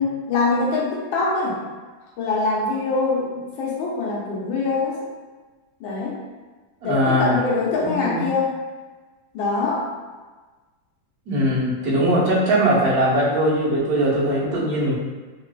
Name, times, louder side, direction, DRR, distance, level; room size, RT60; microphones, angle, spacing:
voice 1, 0.0-1.6 2.2-3.3 3.6-5.1 5.8-6.2 6.8-8.6 9.3-9.9, left 3 dB, 85° left, -5 dB, 1.5 m, -23 dB
voice 2, 6.8-7.4 7.8-8.2 11.3-14.9, right 1 dB, 55° right, -8 dB, 1.4 m, -20 dB
3.7 x 2.4 x 2.3 m, 1.3 s
omnidirectional pair, 2.1 m